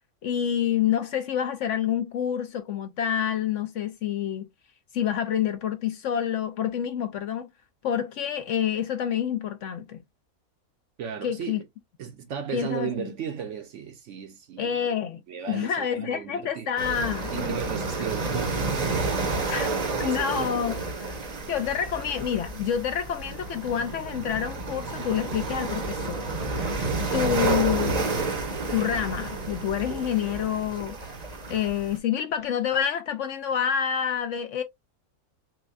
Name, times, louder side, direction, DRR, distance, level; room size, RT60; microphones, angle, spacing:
voice 1, 0.2-4.5 4.9-7.5 7.8-10.0 11.2-11.6 12.5-13.1 14.6-15.2 15.5-17.6 19.5-19.7 20.0-21.2 21.5-26.2 26.5-28.1 28.7-31.0 31.5-34.6, left 9 dB, 65° left, 0.8 m, -28 dB
voice 2, 11.0-11.6 12.0-14.8 15.3-16.7 17.3-20.6, right 8 dB, 60° right, 0.9 m, -36 dB
sound 1, 16.8-32.0, right 3 dB, 35° right, 0.7 m, -30 dB
6.0 x 2.2 x 2.4 m
omnidirectional pair, 1.6 m